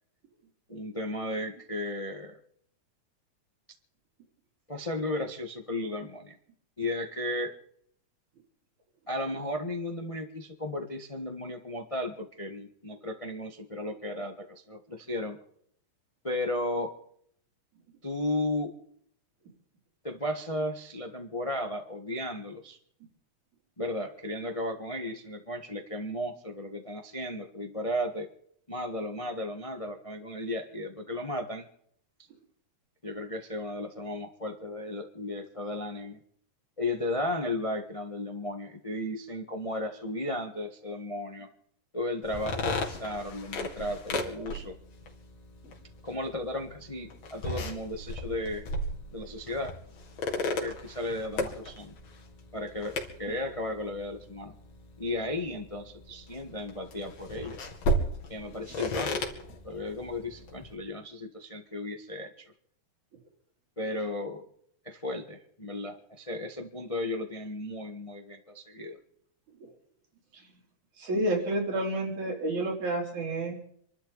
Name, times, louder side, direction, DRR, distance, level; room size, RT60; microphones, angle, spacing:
voice 1, 0.7-2.3 4.7-6.3 6.8-7.5 9.1-15.4 16.2-16.9 18.0-18.7 20.0-22.8 23.8-28.3 28.7-31.7 33.0-36.2 36.8-41.5 41.9-44.7 46.0-48.6 49.1-49.7 50.3-51.9 52.5-54.5 55.0-57.6 58.3-59.2 59.6-62.4 63.8-64.5 64.8-69.0, left 1 dB, 25° left, 5 dB, 0.7 m, -35 dB
sound 1, 42.2-60.8, left 1 dB, 60° left, 3.2 m, -36 dB
voice 2, 71.0-73.6, right 1 dB, 75° right, 0 dB, 4.9 m, -30 dB
27.5 x 12.5 x 4.1 m, 0.67 s
omnidirectional pair, 3.4 m